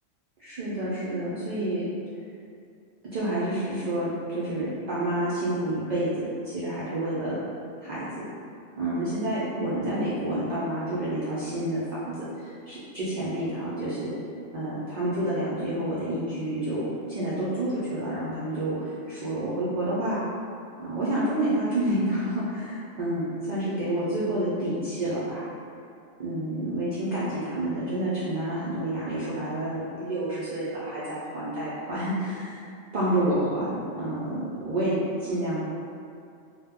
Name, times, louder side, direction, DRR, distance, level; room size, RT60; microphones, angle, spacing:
voice 1, 0.4-1.8 3.1-6.1 6.5-7.3 7.8-8.2 8.8-14.1 14.5-20.2 20.8-25.4 26.2-32.6 32.9-34.9 35.2-35.6, right 1 dB, 70° right, -10 dB, 0.4 m, -29 dB
2.1 x 2.1 x 3.4 m, 2.4 s
omnidirectional pair, 1.3 m